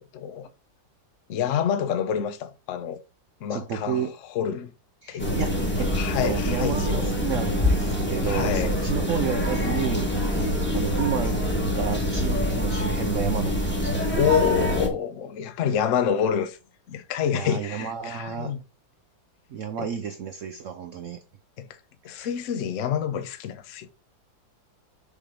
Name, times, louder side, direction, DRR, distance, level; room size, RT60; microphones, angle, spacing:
voice 1, 0.1-0.5 1.3-3.0 3.4-4.0 4.3-4.7 5.1-5.5 5.8-7.1 8.2-8.7 14.2-16.6 16.9-18.6 19.8-19.9 21.6-21.7 22.0-23.9, left 8 dB, 55° left, 0.9 m, -27 dB
voice 2, 3.5-4.1 5.0-5.9 6.2-11.4 11.8-14.0 17.3-18.5 19.5-21.2 22.1-22.3, right 8 dB, 70° right, 0.7 m, -31 dB
sound 1, 5.2-14.9, equal, 5° left, 1.1 m, -25 dB
6.8 x 3.4 x 5.0 m
omnidirectional pair, 2.1 m